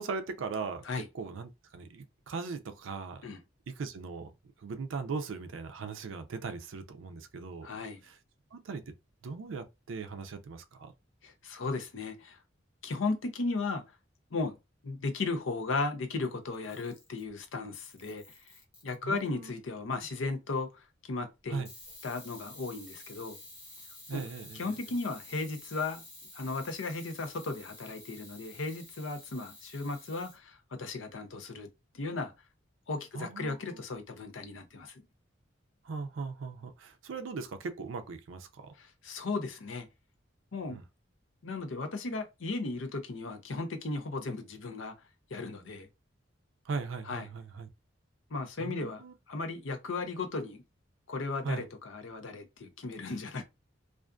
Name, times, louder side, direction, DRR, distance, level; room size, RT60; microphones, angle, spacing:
voice 1, 0.0-0.8 1.1-3.2 3.7-4.3 4.6-7.7 8.0-8.2 8.5-8.8 9.2-10.9 19.0-19.5 21.5-21.7 24.1-24.8 33.1-33.8 35.8-38.7 40.7-40.8 46.7-47.7 48.6-49.1 51.4-51.7, right 4 dB, 80° right, 0.4 m, -39 dB
voice 2, 7.6-8.0 11.2-12.4 12.8-13.8 14.3-14.6 14.8-18.4 18.8-21.6 22.0-23.4 24.1-24.2 24.5-26.0 26.3-31.7 31.9-32.3 32.9-35.0 38.8-39.9 40.5-40.8 41.4-44.9 45.3-45.9 47.0-47.3 48.3-49.0 49.3-50.6 51.1-53.4, left 3 dB, 80° left, 0.6 m, -36 dB
Camera, 16.5-17.3 17.7-19.3 21.7-30.4, left 1 dB, 15° left, 0.9 m, -51 dB
2.4 x 2.4 x 2.2 m
head